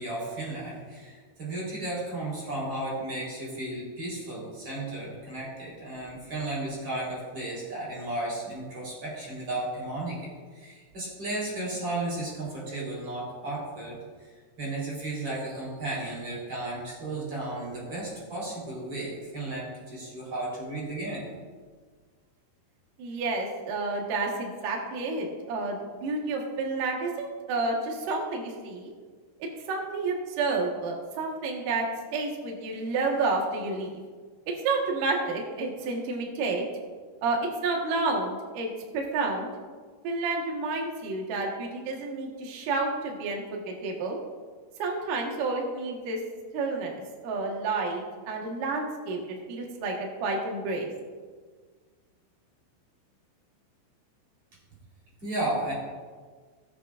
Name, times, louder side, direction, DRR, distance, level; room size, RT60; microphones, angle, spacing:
voice 1, 0.0-14.0 14.6-21.3 23.1-23.3 55.2-55.7, right 2 dB, 30° right, -6 dB, 4.0 m, -34 dB
voice 2, 23.0-28.9 29.4-34.0 34.6-36.6 37.2-39.5 40.0-44.2 44.8-46.2 46.5-50.9, right 3 dB, 70° right, 0 dB, 2.1 m, -30 dB
19.5 x 8.0 x 2.5 m, 1.5 s
omnidirectional pair, 5.9 m